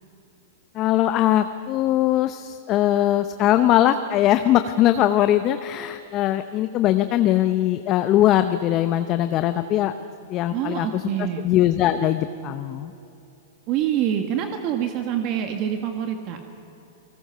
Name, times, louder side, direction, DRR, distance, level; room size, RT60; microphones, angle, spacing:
voice 1, 0.7-9.9 10.3-12.9, left 12 dB, 35° left, 10 dB, 0.8 m, -21 dB
voice 2, 10.5-11.5 13.7-16.4, right 10 dB, 45° right, 5 dB, 1.6 m, -26 dB
29.0 x 19.5 x 5.7 m, 2.8 s
hypercardioid pair, 115°, 0 cm